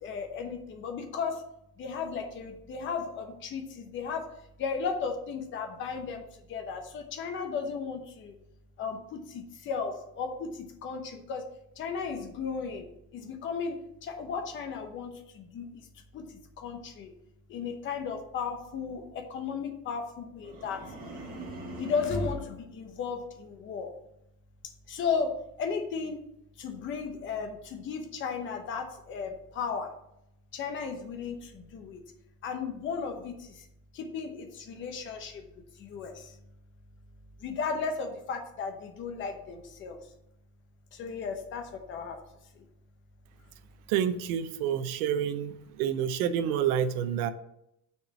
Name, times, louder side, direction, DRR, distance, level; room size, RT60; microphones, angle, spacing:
voice 1, 0.0-1.4 1.8-4.3 4.6-6.2 6.5-8.3 8.8-11.4 11.8-15.7 16.1-17.1 17.5-20.9 21.8-23.9 24.9-26.2 26.6-29.9 30.5-32.0 32.4-33.6 33.9-35.5 35.8-36.4 37.4-40.0 40.9-42.2 42.6-42.7, left 5 dB, 25° left, 5 dB, 0.9 m, -35 dB
sound 1, 20.4-22.5, right 2 dB, 20° right, 1.2 m, -42 dB
voice 2, 43.9-47.3, right 9 dB, 70° right, 12 dB, 0.8 m, -28 dB
6.1 x 4.6 x 6.0 m, 0.80 s
cardioid pair, 175°, 46 cm